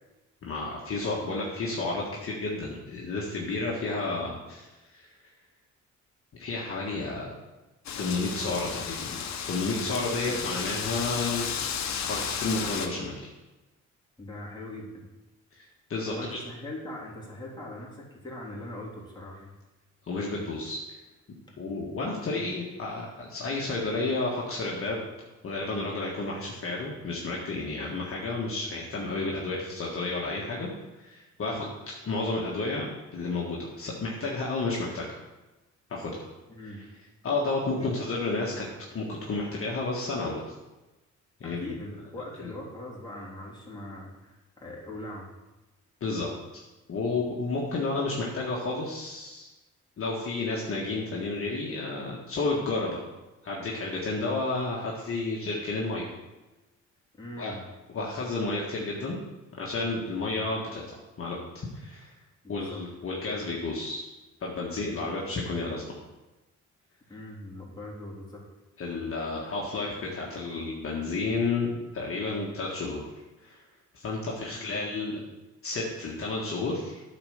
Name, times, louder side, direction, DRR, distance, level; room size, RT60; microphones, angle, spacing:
voice 1, 0.4-4.7 4.9-5.1 6.3-7.3 8.0-9.2 9.5-11.5 11.9-13.3 15.5-16.4 20.0-21.0 21.6-25.0 25.4-30.7 31.0-35.2 35.9-36.3 36.6-36.8 37.2-38.7 38.9-40.5 41.4-41.6 42.4-42.5 46.0-46.6 46.9-49.5 50.0-53.0 53.4-56.0 57.4-57.5 57.9-59.2 59.6-62.1 62.5-64.1 64.4-65.8 68.8-73.1 73.4-73.6 73.9-75.2 75.6-77.0, left 3 dB, 45° left, -3 dB, 1.5 m, -31 dB
Wind, 7.8-12.9, left 7 dB, 65° left, 1.0 m, -33 dB
voice 2, 14.2-15.1 16.0-19.5 22.2-22.4 31.4-31.7 36.5-36.8 37.8-37.9 41.4-45.3 57.2-57.6 62.4-62.8 67.1-68.4 74.4-74.8, left 1 dB, 15° left, -4 dB, 3.1 m, -41 dB
8.8 x 4.4 x 6.6 m, 1.1 s
cardioid pair, 90°, 30 cm